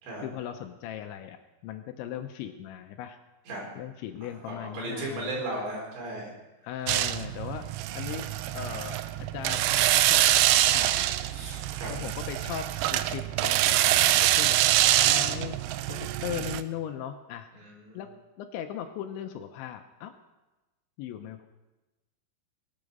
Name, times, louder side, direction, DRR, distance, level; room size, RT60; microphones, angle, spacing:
voice 1, 0.2-1.4 1.6-3.2 3.8-5.4 6.6-7.7 7.9-8.3 8.5-11.0 11.9-14.6 15.0-15.6 15.9-17.5 17.9-18.1 18.4-20.1 21.0-21.5, left 10 dB, 80° left, 6 dB, 2.9 m, -38 dB
voice 2, 4.2-6.3 11.3-12.0 17.5-18.0, right 2 dB, 65° right, -2 dB, 6.1 m, -36 dB
sound 1, 6.9-16.6, right 14 dB, 90° right, 2.4 m, -25 dB
23.0 x 8.7 x 5.3 m, 1.1 s
omnidirectional pair, 5.6 m